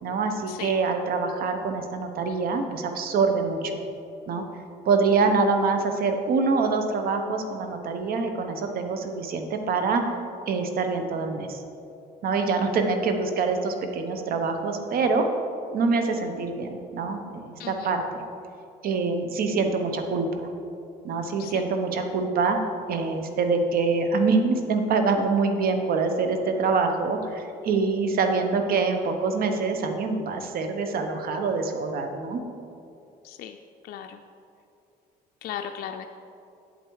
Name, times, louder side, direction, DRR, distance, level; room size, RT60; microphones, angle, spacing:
voice 1, 0.0-3.8 4.3-4.4 4.8-10.2 10.5-11.6 12.2-15.3 15.7-18.2 18.8-20.5 21.0-22.6 22.9-32.4, right 4 dB, 60° right, 6 dB, 1.0 m, -25 dB
voice 2, 33.2-33.6 33.9-34.2 35.4-36.1, left 9 dB, 65° left, 4 dB, 0.5 m, -36 dB
8.2 x 8.0 x 4.7 m, 2.7 s
cardioid pair, 110°, 17 cm